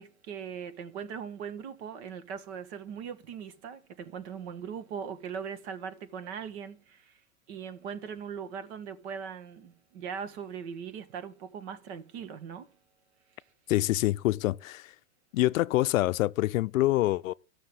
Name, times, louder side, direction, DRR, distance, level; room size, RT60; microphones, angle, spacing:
voice 1, 0.0-7.1 7.5-12.7, right 7 dB, 50° right, 1.7 m, -40 dB
voice 2, 13.7-14.9 15.3-17.3, left 17 dB, 65° left, 0.6 m, -26 dB
13.5 x 6.5 x 7.8 m
supercardioid pair, 155°, 43 cm